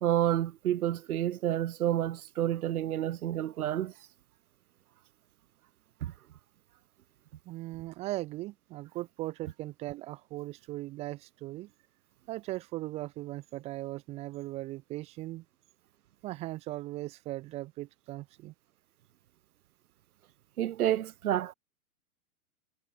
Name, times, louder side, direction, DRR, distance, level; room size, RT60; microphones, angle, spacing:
voice 1, 0.0-3.9 6.0-6.1 20.6-21.5, right 12 dB, 75° right, 1.2 m, -29 dB
voice 2, 7.5-11.7 12.3-15.4 16.2-18.5, right 18 dB, 15° right, 0.6 m, -38 dB
hypercardioid pair, 145°, 45 cm